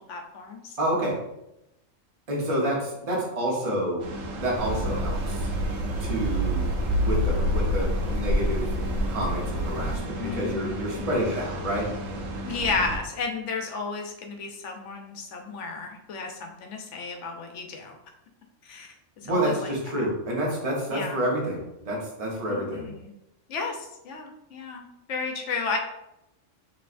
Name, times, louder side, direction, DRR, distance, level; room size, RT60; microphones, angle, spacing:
voice 1, 0.1-0.7 10.2-11.2 12.4-18.0 18.6-18.9 19.2-19.7 20.0-20.1 20.9-21.2 22.4-23.1 23.5-24.8 25.1-25.8, left 4 dB, 70° left, 3 dB, 1.0 m, -33 dB
voice 2, 0.8-1.2 2.3-4.1 4.4-5.5 6.0-6.7 7.0-8.7 9.1-11.9 19.2-22.9, right 1 dB, 30° right, -3 dB, 0.9 m, -28 dB
sound 1, 4.0-13.0, right 1 dB, 80° right, 1.0 m, -35 dB
sound 2, 4.6-10.0, equal, 55° right, 1.5 m, -27 dB
5.4 x 3.0 x 2.5 m, 0.87 s
omnidirectional pair, 1.3 m